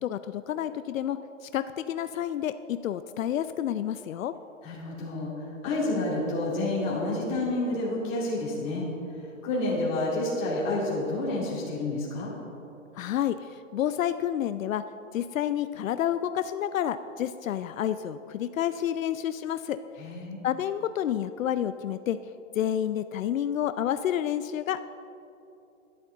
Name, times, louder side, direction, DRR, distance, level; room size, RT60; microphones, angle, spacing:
voice 1, 0.0-4.3 12.9-14.8 15.1-19.8 20.4-22.2 22.5-24.9, left 10 dB, 85° left, 11 dB, 0.5 m, -29 dB
voice 2, 4.6-8.9 9.4-12.3 20.0-20.4, left 2 dB, 20° left, -6 dB, 2.5 m, -29 dB
12.5 x 11.0 x 3.9 m, 2.9 s
hypercardioid pair, 170°, 39 cm